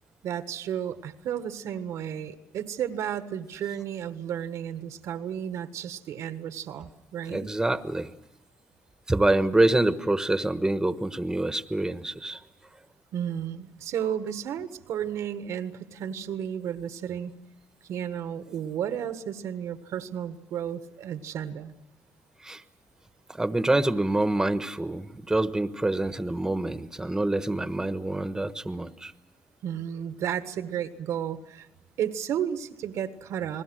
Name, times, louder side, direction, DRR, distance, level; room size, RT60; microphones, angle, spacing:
voice 1, 0.2-7.5 13.1-17.3 17.8-21.7 29.6-31.7 32.0-33.6, right 9 dB, 85° right, 10 dB, 1.5 m, -33 dB
voice 2, 7.3-8.1 9.1-12.4 22.4-22.6 23.3-29.1, right 2 dB, 10° right, 11 dB, 1.2 m, -26 dB
30.0 x 20.5 x 6.3 m, 0.94 s
cardioid pair, 100°, 5 cm